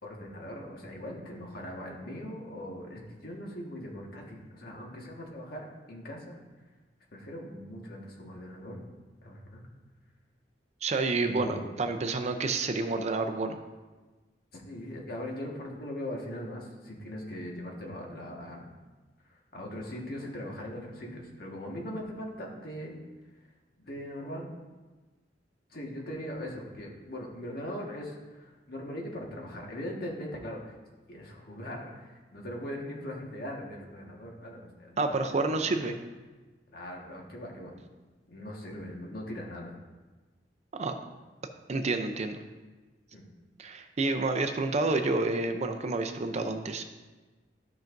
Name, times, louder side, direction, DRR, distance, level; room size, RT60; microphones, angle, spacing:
voice 1, 0.0-6.4 7.1-8.8 9.2-9.6 11.2-11.7 14.5-18.7 19.2-23.0 23.3-23.5 23.8-24.5 25.7-30.8 31.1-35.9 36.7-37.8 38.3-39.7 43.1-43.3, equal, 55° left, -1 dB, 1.6 m, -40 dB
voice 2, 10.8-13.6 35.0-35.9 40.7-40.9 41.7-42.4 43.6-46.8, right 3 dB, 40° right, 6 dB, 0.5 m, -29 dB
13.0 x 5.8 x 2.6 m, 1.3 s
head